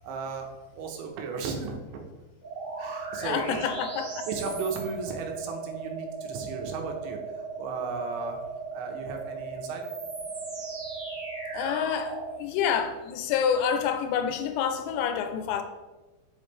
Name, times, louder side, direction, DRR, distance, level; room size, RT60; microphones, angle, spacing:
voice 1, 0.0-0.5 0.8-1.8 2.8-3.6 4.3-7.2 7.6-8.4 8.7-9.8, right 4 dB, 85° right, 3 dB, 3.2 m, -35 dB
sound 1, 2.4-12.3, right 4 dB, 60° right, 1.9 m, -37 dB
voice 2, 3.2-4.1 11.5-15.6, left 8 dB, 85° left, 7 dB, 2.7 m, -28 dB
7.4 x 5.2 x 3.2 m, 1.2 s
omnidirectional pair, 5.1 m